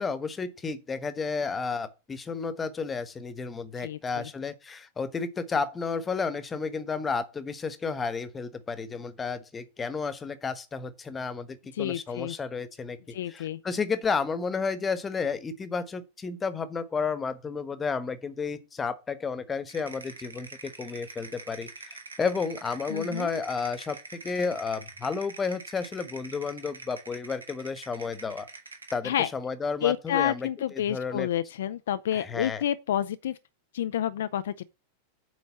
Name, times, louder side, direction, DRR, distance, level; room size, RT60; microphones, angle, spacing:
voice 1, 0.0-28.5 28.9-31.3 32.1-32.6, left 5 dB, 15° left, 1.2 m, -32 dB
voice 2, 3.8-4.3 11.8-12.3 13.1-13.6 22.9-23.3 29.0-29.3 29.8-33.4 33.7-34.6, left 11 dB, 60° left, 0.5 m, -29 dB
sound 1, 19.7-29.1, right 3 dB, 75° right, 1.7 m, -45 dB
8.0 x 5.1 x 7.1 m
figure-of-eight pair, 90°, 0 cm